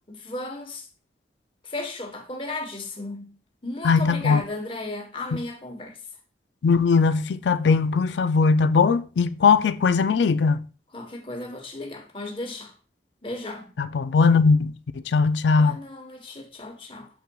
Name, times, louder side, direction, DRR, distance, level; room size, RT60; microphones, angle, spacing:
voice 1, 0.1-0.9 1.6-3.3 3.6-6.0 10.9-12.7 13.2-13.7 15.6-17.1, left 2 dB, 30° left, 1.1 m, -35 dB
voice 2, 3.8-4.4 6.6-10.7 13.8-15.8, left 5 dB, 80° left, 0.4 m, -20 dB
7.4 x 5.7 x 2.3 m
head